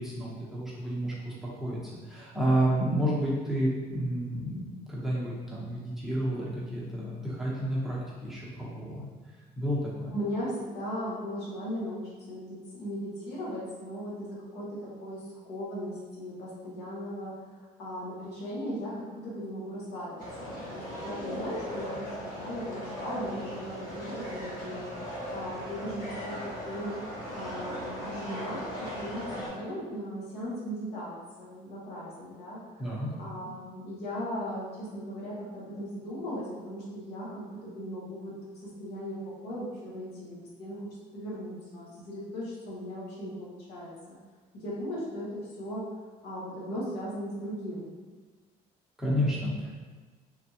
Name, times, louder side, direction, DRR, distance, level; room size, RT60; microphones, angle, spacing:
voice 1, 0.0-1.8 2.1-9.0 9.6-10.1 32.8-33.1 49.0-49.7, equal, ahead, -7 dB, 0.9 m, -30 dB
voice 2, 10.1-26.9 27.3-28.6 28.9-32.9 33.2-38.3 38.6-40.8 41.1-44.2 44.5-45.8 46.2-47.9, equal, 75° left, -6 dB, 1.1 m, -38 dB
sound 1, 20.2-29.5, equal, 50° left, 1.4 m, -38 dB
3.4 x 2.3 x 2.8 m, 1.4 s
cardioid pair, 110°, 17 cm